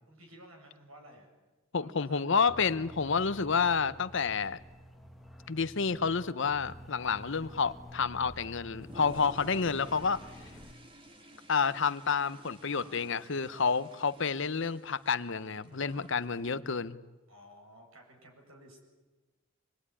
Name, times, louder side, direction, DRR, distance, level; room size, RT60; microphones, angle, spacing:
voice 1, 0.1-1.3 1.8-2.3 12.7-13.8 17.3-18.9, equal, 75° right, 2 dB, 7.9 m, -55 dB
voice 2, 1.7-4.6 5.5-10.2 11.5-17.0, left 5 dB, 60° left, 14 dB, 0.8 m, -29 dB
sound 1, 2.5-10.7, equal, ahead, 1.5 m, -50 dB
Toilet flush, 8.7-16.6, right 1 dB, 25° right, 2.0 m, -53 dB
26.0 x 21.5 x 9.9 m, 1.2 s
head